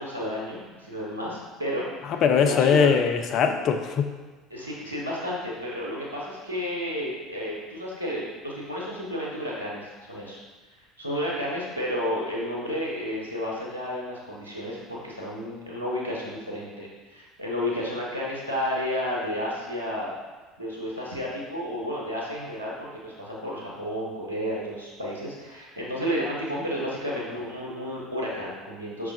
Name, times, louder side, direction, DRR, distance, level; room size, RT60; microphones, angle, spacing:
voice 1, 0.0-2.9 4.5-10.4 11.0-20.1 20.6-29.1, equal, 85° right, -4 dB, 0.8 m, -32 dB
voice 2, 2.1-4.1, left 6 dB, 45° left, 6 dB, 0.3 m, -21 dB
5.4 x 3.0 x 2.6 m, 1.3 s
figure-of-eight pair, 65°, 0 cm